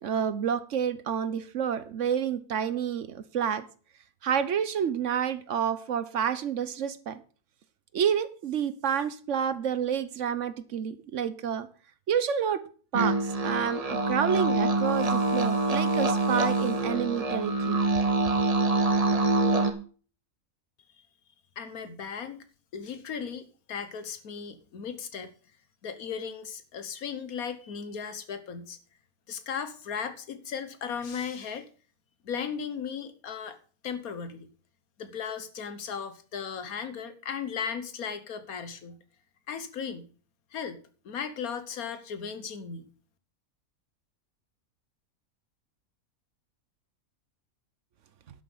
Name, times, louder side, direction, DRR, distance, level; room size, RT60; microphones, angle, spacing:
voice 1, 0.0-3.7 4.2-7.2 7.9-11.7 12.1-12.6 12.9-18.1, right 8 dB, 60° right, 1.1 m, -29 dB
sound 1, 12.9-19.7, right 2 dB, 30° right, 1.1 m, -25 dB
voice 2, 21.6-22.4 22.7-25.3 25.8-28.8 29.3-31.7 32.2-33.6 33.8-34.5 35.0-39.0 39.5-40.1 40.5-40.8 41.0-42.9, left 6 dB, 90° left, 1.6 m, -36 dB
11.0 x 7.3 x 5.5 m
omnidirectional pair, 1.5 m